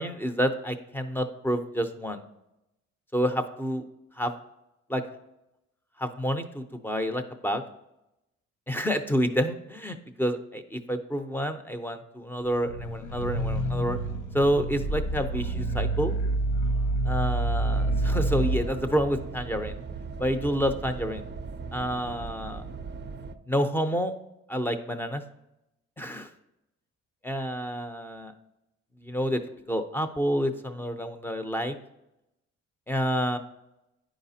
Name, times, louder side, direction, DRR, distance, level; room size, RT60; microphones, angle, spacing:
voice 1, 0.0-2.2 3.1-3.9 4.2-4.3 4.9-5.0 6.0-7.6 8.7-14.0 14.3-16.1 17.1-19.7 20.2-21.2 21.7-22.6 23.5-24.1 24.5-25.2 26.0-26.3 27.2-28.3 29.0-29.4 29.7-31.8 32.9-33.4, equal, 5° left, 8 dB, 0.6 m, -28 dB
sound 1, 12.6-18.7, right 2 dB, 75° left, 0.8 m, -27 dB
sound 2, 17.7-23.3, right 5 dB, 35° right, 0.5 m, -38 dB
9.7 x 5.0 x 2.8 m, 0.88 s
cardioid pair, 90°, 30 cm